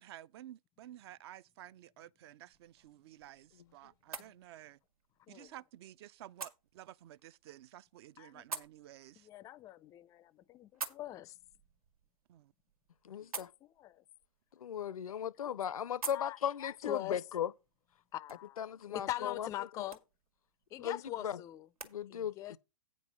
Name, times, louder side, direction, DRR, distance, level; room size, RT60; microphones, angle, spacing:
voice 1, 0.0-4.8 5.3-9.3 12.3-12.5, right 13 dB, 45° right, 0.4 m, -53 dB
sound 1, 2.5-22.0, right 4 dB, 85° right, 1.7 m, -51 dB
voice 2, 5.2-5.6 8.2-8.5 9.2-11.4 13.2-14.0 15.1-15.6 16.1-17.2 18.1-20.0 20.7-21.7 22.1-22.6, left 14 dB, 20° left, 0.4 m, -43 dB
voice 3, 13.0-13.5 14.6-17.5 18.6-19.5 20.8-21.4 21.8-22.3, left 9 dB, 80° left, 0.5 m, -37 dB
8.9 x 5.3 x 6.0 m
hypercardioid pair, 120°, 18 cm